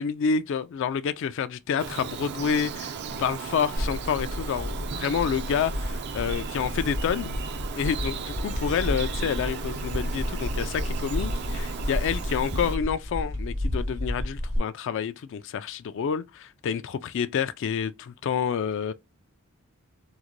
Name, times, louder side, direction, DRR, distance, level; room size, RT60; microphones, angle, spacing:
voice 1, 0.0-2.9 3.2-7.4 7.8-18.9, left 7 dB, 60° left, 0.3 m, -28 dB
Bird vocalization bird call bird song, 1.8-12.8, right 4 dB, 50° right, 0.4 m, -35 dB
sound 1, 3.8-14.6, left 1 dB, 90° right, 1.6 m, -32 dB
3.7 x 2.1 x 3.0 m
head